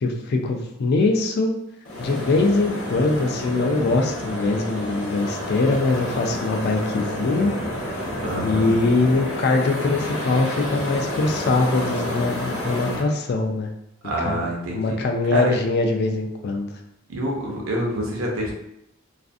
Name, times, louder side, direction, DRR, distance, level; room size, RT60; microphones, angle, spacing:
voice 1, 0.0-1.5 2.0-7.5 8.4-13.7 14.2-14.4 14.7-16.7, left 3 dB, 50° left, 3 dB, 0.3 m, -22 dB
sound 1, 1.8-13.0, equal, 90° left, 0.8 m, -29 dB
voice 2, 8.2-8.8 14.0-15.0 15.2-15.6 17.1-18.5, right 1 dB, 80° right, -2 dB, 0.7 m, -26 dB
2.4 x 2.4 x 2.4 m, 0.81 s
head